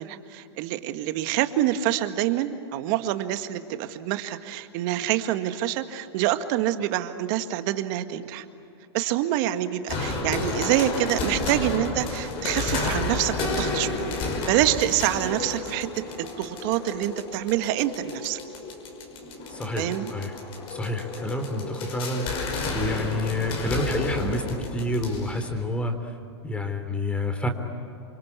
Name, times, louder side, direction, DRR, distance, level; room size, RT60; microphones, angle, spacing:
voice 1, 0.0-8.4 8.9-15.9 16.2-18.4 19.8-20.1, right 13 dB, 50° right, 9 dB, 1.8 m, -26 dB
sound 1, 9.9-25.6, left 3 dB, 40° left, 5.8 m, -31 dB
voice 2, 19.5-20.3 20.7-22.3 22.7-26.1 26.4-27.5, left 1 dB, 10° left, 7 dB, 3.6 m, -28 dB
28.0 x 24.5 x 8.4 m, 2.8 s
hypercardioid pair, 110°, 14 cm